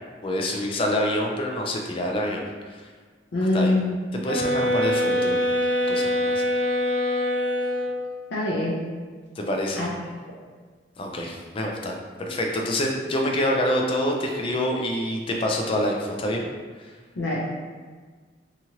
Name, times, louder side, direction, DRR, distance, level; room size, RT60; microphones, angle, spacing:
voice 1, 0.2-2.8 3.5-3.7 4.2-5.5 5.9-6.5 9.4-9.9 11.0-16.5 16.8-16.9, left 1 dB, 30° left, 1 dB, 0.3 m, -26 dB
voice 2, 3.3-4.0 8.3-8.8 9.8-9.9 17.2-17.4, left 2 dB, 85° left, -6 dB, 0.5 m, -23 dB
sound 1, 4.2-8.1, left 1 dB, 80° right, 0.8 m, -24 dB
2.9 x 2.4 x 2.8 m, 1.5 s
head